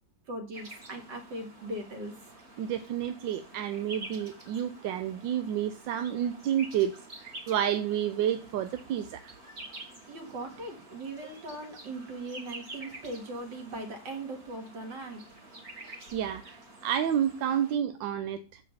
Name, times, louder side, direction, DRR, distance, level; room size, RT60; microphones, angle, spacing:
voice 1, 0.3-2.3 10.1-15.2, right 1 dB, 70° right, 4 dB, 2.5 m, -39 dB
sound 1, 0.5-17.7, right 2 dB, 35° right, 2.2 m, -48 dB
voice 2, 2.6-9.3 15.8-18.6, right 10 dB, 85° right, 9 dB, 1.4 m, -30 dB
7.1 x 4.9 x 6.8 m, 0.35 s
omnidirectional pair, 2.0 m